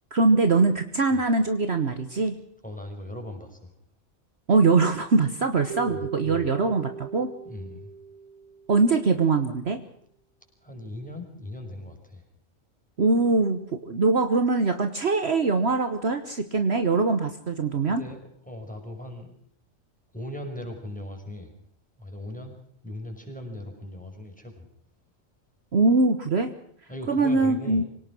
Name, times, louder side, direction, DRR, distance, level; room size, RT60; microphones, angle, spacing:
voice 1, 0.1-2.3 4.5-7.3 8.7-9.8 13.0-18.0 25.7-26.5 27.1-27.8, right 3 dB, 50° right, 9 dB, 1.5 m, -22 dB
voice 2, 2.6-3.7 5.9-6.5 7.4-7.9 10.6-12.2 17.9-19.3 20.1-21.5 22.0-22.5 22.8-24.7 26.9-27.9, left 1 dB, 5° left, 3 dB, 5.6 m, -39 dB
Keyboard (musical), 5.7-8.9, right 6 dB, 80° right, 2.7 m, -38 dB
25.5 x 18.0 x 6.1 m, 0.65 s
omnidirectional pair, 1.4 m